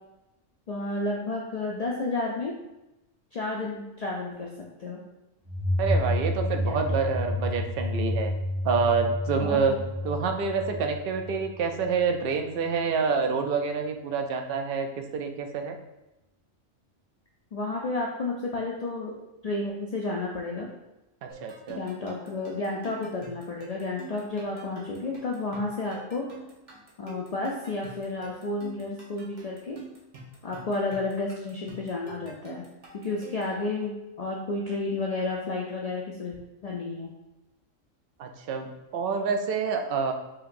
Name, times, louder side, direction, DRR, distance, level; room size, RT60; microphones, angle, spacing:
voice 1, 0.7-2.5 3.3-5.0 6.6-6.8 9.3-9.8 17.5-19.1 19.4-20.7 21.7-26.3 27.0-29.8 30.4-32.6 32.9-36.3 36.6-37.1, left 2 dB, 65° left, -2 dB, 0.3 m, -31 dB
sound 1, 5.5-12.0, left 1 dB, 10° right, 0.3 m, -30 dB
voice 2, 5.8-8.3 8.6-9.8 10.0-14.9 15.1-15.8 21.2-21.8 38.2-40.1, right 5 dB, 60° right, 5 dB, 0.6 m, -27 dB
sound 2, 21.3-33.6, right 3 dB, 40° right, 1.1 m, -47 dB
5.7 x 2.9 x 2.5 m, 0.97 s
omnidirectional pair, 1.3 m